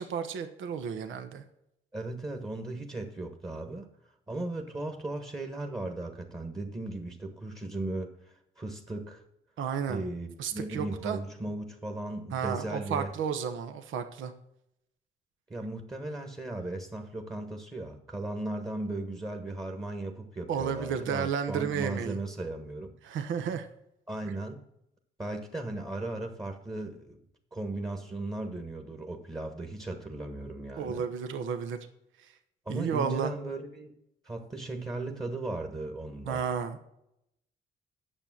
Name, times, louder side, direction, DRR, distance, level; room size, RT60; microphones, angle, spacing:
voice 1, 0.0-1.4 9.6-10.0 10.4-11.2 12.3-14.3 20.5-22.2 23.0-23.7 30.8-31.8 32.7-33.3 36.3-36.8, right 7 dB, 80° right, 8 dB, 1.1 m, -32 dB
voice 2, 1.9-3.9 4.3-9.2 9.9-13.1 15.5-22.9 24.1-24.6 25.2-27.2 27.5-31.0 32.6-33.9 34.2-36.4, right 2 dB, 20° right, 4 dB, 1.5 m, -37 dB
8.9 x 7.0 x 7.3 m, 0.80 s
cardioid pair, 90°, 20 cm